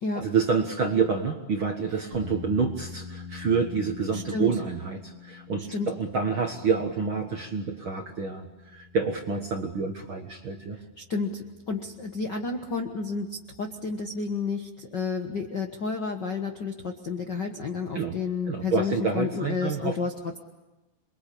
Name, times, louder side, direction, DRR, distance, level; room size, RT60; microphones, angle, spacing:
voice 1, 0.1-10.8 17.9-18.1 18.5-20.0, right 5 dB, 50° right, 4 dB, 1.6 m, -28 dB
sound 1, 2.1-14.6, left 6 dB, 25° left, 4.2 m, -46 dB
voice 2, 4.1-4.5 5.7-5.9 11.0-20.1, left 4 dB, 55° left, 4 dB, 1.2 m, -31 dB
27.5 x 23.0 x 8.6 m, 1.1 s
omnidirectional pair, 4.1 m